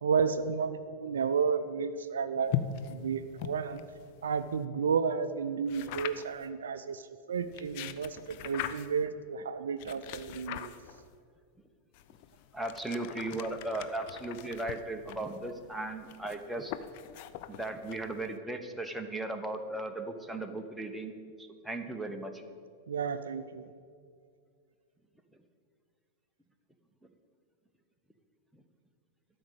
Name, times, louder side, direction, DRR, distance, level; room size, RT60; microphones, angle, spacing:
voice 1, 0.0-2.6 2.9-3.8 4.2-10.7 22.9-23.7, right 6 dB, 65° right, 11 dB, 0.4 m, -32 dB
sound 1, 2.5-4.6 5.7-6.4 7.4-9.1 9.8-11.1 11.9-18.4, left 10 dB, 45° left, 0.5 m, -41 dB
voice 2, 12.5-16.7 17.5-21.1 21.4-22.4 28.5-28.6, right 2 dB, ahead, 4 dB, 0.9 m, -37 dB
12.5 x 5.1 x 7.6 m, 2.2 s
figure-of-eight pair, 90°, 0 cm